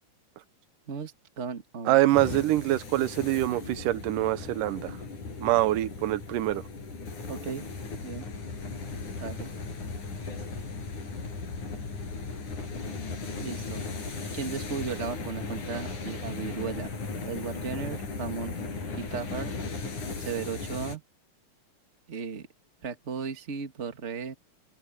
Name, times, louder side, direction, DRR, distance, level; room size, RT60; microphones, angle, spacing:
voice 1, 0.9-2.0 2.6-2.8 3.4-3.6 7.3-7.7 8.0-8.3 9.2-9.5 13.4-13.8 14.3-16.9 17.2-18.5 19.0-19.5 20.2-21.0 22.1-22.5 22.8-24.3, right 5 dB, 25° right, 1.7 m, -36 dB
voice 2, 1.9-5.0 5.4-6.6, right 15 dB, 85° right, 2.4 m, -25 dB
sound 1, 2.1-21.0, left 4 dB, 70° left, 7.4 m, -37 dB
Bass guitar, 12.8-19.1, left 5 dB, 10° left, 5.7 m, -51 dB
omnidirectional pair, 3.7 m